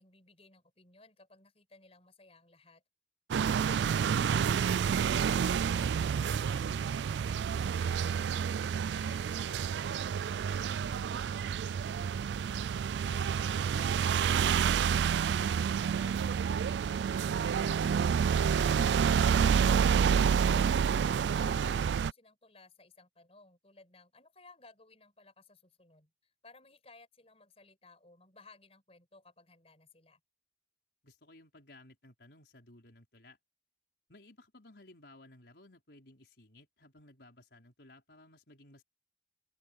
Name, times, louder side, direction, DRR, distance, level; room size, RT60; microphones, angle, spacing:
voice 1, 0.0-2.8 13.0-20.8 21.3-30.2, left 3 dB, 35° left, 7.5 m, -59 dB
sound 1, 3.3-22.1, right 7 dB, 80° right, 0.3 m, -29 dB
voice 2, 3.9-7.4 8.2-12.0 31.0-33.4 34.1-38.8, left 2 dB, 75° left, 4.8 m, -57 dB
head